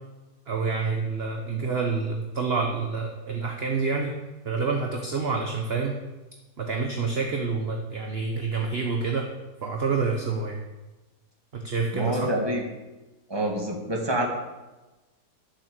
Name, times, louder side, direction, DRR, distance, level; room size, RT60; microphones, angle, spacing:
voice 1, 0.5-4.2 4.4-5.9 6.6-9.3 9.6-10.6 11.5-12.3, right 4 dB, 40° right, 2 dB, 1.1 m, -27 dB
voice 2, 11.9-12.6 13.3-14.3, right 1 dB, 15° right, 0 dB, 1.8 m, -27 dB
11.5 x 7.2 x 6.7 m, 1.1 s
omnidirectional pair, 1.8 m